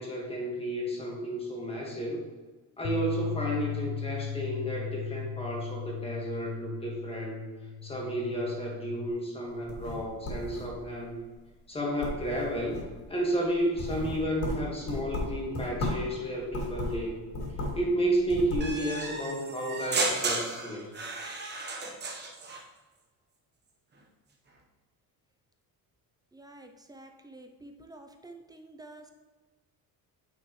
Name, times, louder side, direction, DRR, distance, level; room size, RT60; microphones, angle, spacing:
voice 1, 0.0-2.2 2.8-7.4 7.8-11.2 11.7-12.8 13.1-17.2 17.7-20.9, right 1 dB, 15° left, -2 dB, 1.6 m, -32 dB
Bass guitar, 2.8-9.1, left 7 dB, 80° left, 0.7 m, -37 dB
sound 1, 9.5-11.0 11.5-11.7 12.0-13.0 13.5-16.1 16.5-17.9 18.2-18.7, left 1 dB, 45° left, 2.5 m, -35 dB
sound 2, 18.6-22.6, right 3 dB, 25° right, 1.0 m, -33 dB
voice 2, 26.3-29.1, right 2 dB, 10° right, 4 dB, 0.3 m, -49 dB
9.1 x 5.9 x 3.0 m, 1.3 s
cardioid pair, 165°, 39 cm